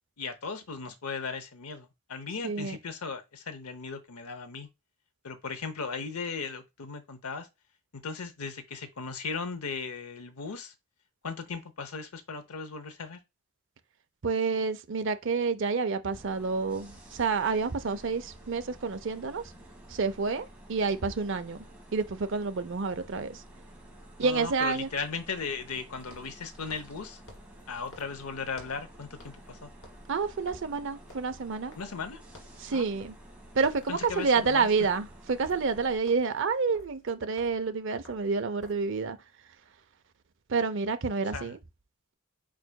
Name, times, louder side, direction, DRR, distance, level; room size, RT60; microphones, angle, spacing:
voice 1, 0.2-4.7 5.2-7.5 7.9-10.7 11.2-13.2 24.2-27.2 27.7-29.7 31.8-32.2 32.7-33.0 33.9-34.7 41.3-41.5, left 5 dB, 90° left, 0.8 m, -37 dB
voice 2, 2.4-2.8 14.2-19.4 19.9-21.6 21.9-23.4 24.2-24.9 30.1-31.7 32.6-33.1 33.5-39.2 40.5-41.6, right 4 dB, 55° right, 0.5 m, -29 dB
sound 1, 16.1-36.0, right 1 dB, 5° right, 1.3 m, -51 dB
sound 2, 26.0-28.9 29.2-29.5 29.8-32.1 32.3-32.7 33.0-33.3 33.5-38.9, left 1 dB, 70° left, 1.9 m, -55 dB
4.8 x 4.7 x 2.2 m
head